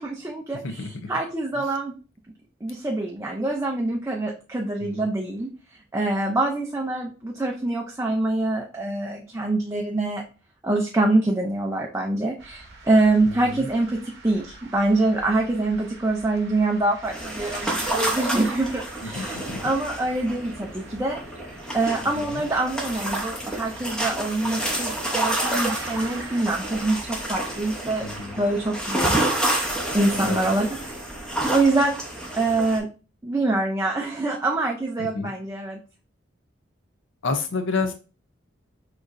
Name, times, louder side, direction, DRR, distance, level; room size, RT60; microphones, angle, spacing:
voice 1, 0.0-1.9 2.6-5.5 5.9-10.2 10.6-21.2 21.7-28.1 28.4-30.9 31.5-32.0 32.4-32.9 33.2-35.8, right 2 dB, 15° right, 0 dB, 0.4 m, -25 dB
sound 1, 12.4-31.6, right 3 dB, 50° right, 0.9 m, -45 dB
voice 2, 13.3-13.7 19.0-19.6 22.0-22.4 28.0-28.4 30.2-30.5 35.0-35.3 37.2-37.9, left 3 dB, 65° left, 6 dB, 0.6 m, -30 dB
sound 2, 17.0-32.8, right 1 dB, 5° left, 0.8 m, -29 dB
6.2 x 3.0 x 2.5 m, 0.34 s
head